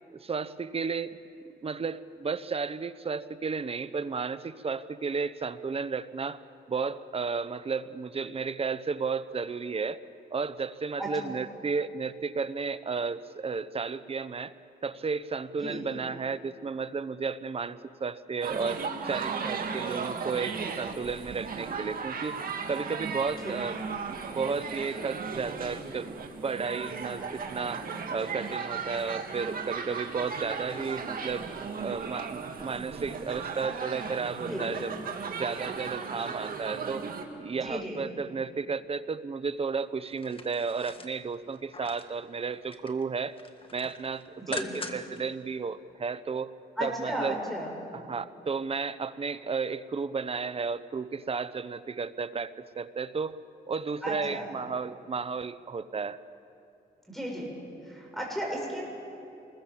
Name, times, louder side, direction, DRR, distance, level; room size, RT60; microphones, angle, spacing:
voice 1, 0.1-1.2 1.6-6.4 6.7-10.0 10.3-14.5 14.8-22.4 22.7-23.8 24.3-26.1 26.4-31.5 31.8-34.9 35.4-37.1 37.4-43.4 43.7-46.5 46.8-47.4 47.9-53.4 53.7-56.2, right 5 dB, 35° right, 14 dB, 0.8 m, -33 dB
sound 1, 18.4-37.2, right 5 dB, 55° right, 2.2 m, -36 dB
voice 2, 34.4-34.7 37.6-38.0 44.4-44.7 46.8-47.7 54.0-54.5 57.1-57.5 57.8-58.8, right 1 dB, ahead, -1 dB, 7.3 m, -34 dB
sound 2, 40.1-42.2 42.5-43.0 43.4-45.2 45.6-45.7, left 3 dB, 30° left, 1.7 m, -42 dB
26.5 x 21.0 x 7.3 m, 2.6 s
cardioid pair, 95°, 17 cm